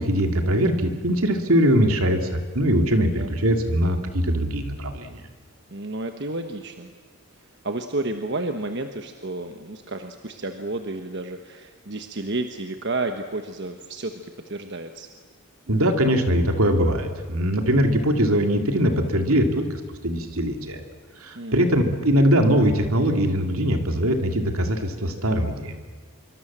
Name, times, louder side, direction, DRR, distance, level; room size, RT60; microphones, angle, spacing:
voice 1, 0.0-5.2 15.7-19.7 20.0-20.8 21.2-25.7, equal, 75° right, 5 dB, 2.8 m, -21 dB
voice 2, 2.9-3.3 5.7-6.9 7.4-15.1 21.3-21.9, right 2 dB, 50° right, 6 dB, 1.3 m, -31 dB
25.0 x 24.0 x 7.5 m, 1.4 s
head